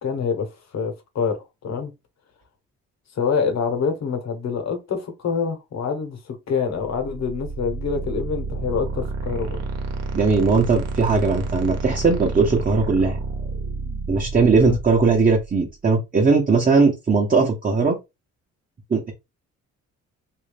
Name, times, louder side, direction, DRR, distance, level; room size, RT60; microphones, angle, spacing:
voice 1, 0.0-1.9 3.1-9.6 14.6-14.8, left 6 dB, 60° left, 1.3 m, -26 dB
sound 1, 6.8-15.6, right 3 dB, 55° right, 1.0 m, -30 dB
voice 2, 10.1-13.2 14.1-18.0 18.9-19.1, right 4 dB, 25° right, 0.9 m, -19 dB
3.1 x 2.7 x 3.3 m
cardioid pair, 90°, 30 cm